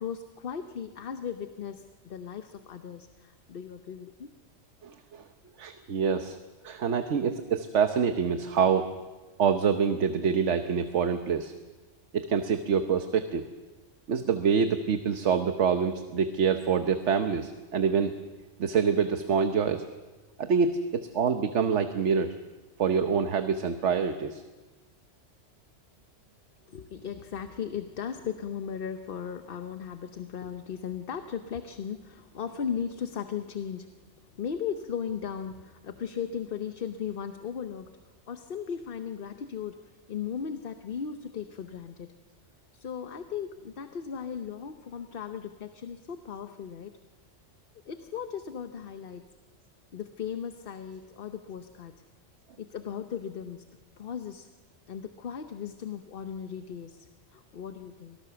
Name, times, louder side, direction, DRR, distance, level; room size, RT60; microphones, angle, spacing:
voice 1, 0.0-4.3 26.7-38.0 38.3-42.1 42.7-46.9 47.9-49.2 49.9-51.9 52.6-53.6 54.0-54.5 54.9-58.2, left 7 dB, 55° left, 8 dB, 1.0 m, -37 dB
voice 2, 4.8-5.2 5.6-6.4 6.6-8.9 9.4-11.5 12.1-13.4 14.1-18.1 18.6-19.8 20.4-22.3 22.8-24.4, right 6 dB, 75° right, 8 dB, 1.3 m, -26 dB
24.5 x 18.5 x 6.9 m, 1.2 s
omnidirectional pair, 1.2 m